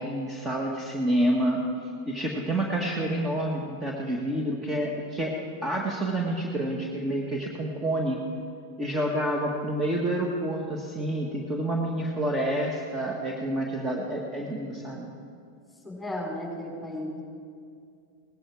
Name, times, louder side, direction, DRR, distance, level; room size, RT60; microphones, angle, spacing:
voice 1, 0.0-8.2 8.8-15.1, right 1 dB, 20° right, 0 dB, 1.7 m, -28 dB
voice 2, 15.8-17.2, left 1 dB, 5° left, -1 dB, 4.7 m, -34 dB
18.5 x 13.5 x 4.8 m, 2.3 s
hypercardioid pair, 110°, 0 cm